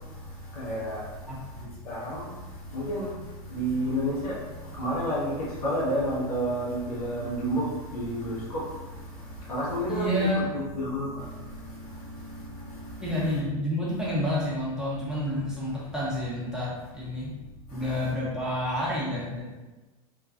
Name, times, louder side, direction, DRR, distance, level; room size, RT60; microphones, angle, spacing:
voice 1, 0.5-1.1 1.8-2.4 2.7-3.2 3.5-4.4 4.7-9.0 9.4-13.0 17.3-17.4 17.7-18.1, equal, 80° left, -7 dB, 1.3 m, -31 dB
voice 2, 1.3-1.7 9.9-10.5 13.0-17.3 17.7-19.4, left 1 dB, 5° right, -8 dB, 0.9 m, -29 dB
3.0 x 2.3 x 2.4 m, 1.1 s
hypercardioid pair, 100°, 19 cm